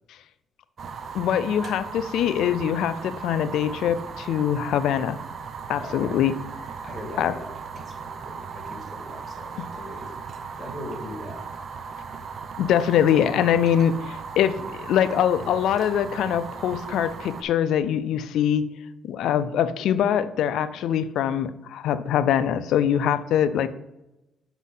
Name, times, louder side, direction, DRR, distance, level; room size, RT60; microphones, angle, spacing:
Fire, 0.8-17.4, right 5 dB, 55° right, 0.6 m, -37 dB
voice 1, 1.1-5.2 5.7-6.3 7.2-7.3 12.6-18.7 19.0-23.7, left 9 dB, 80° left, 13 dB, 0.5 m, -23 dB
voice 2, 5.8-6.2 6.8-10.1 10.6-11.4 12.1-12.3, left 1 dB, 20° left, 0 dB, 2.5 m, -40 dB
6.2 x 4.0 x 5.6 m, 0.93 s
cardioid pair, 90°, 0 cm